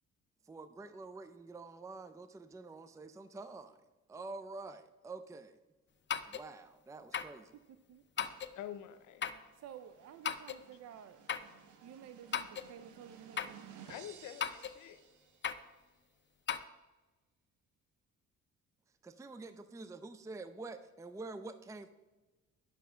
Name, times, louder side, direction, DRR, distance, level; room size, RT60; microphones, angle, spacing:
voice 1, 0.5-3.8 4.1-5.6 6.3-7.5 19.0-21.9, right 3 dB, 10° right, 11 dB, 0.5 m, -47 dB
sound 1, 6.1-6.5 7.1-7.4 8.2-8.6 9.2-9.5 10.2-10.6 11.3-11.5 12.3-12.7 13.4-13.6 14.4-14.8 15.4-15.7 16.5-16.6, left 8 dB, 40° left, 0.6 m, -37 dB
sound 2, 8.2-15.7, right 8 dB, 80° right, 1.0 m, -58 dB
voice 2, 8.5-9.4 13.8-15.0, left 11 dB, 90° left, 12 dB, 0.8 m, -47 dB
voice 3, 9.6-11.2 11.8-13.9, right 9 dB, 60° right, 11 dB, 0.6 m, -52 dB
9.4 x 6.2 x 5.6 m, 1.2 s
cardioid pair, 90°, 30 cm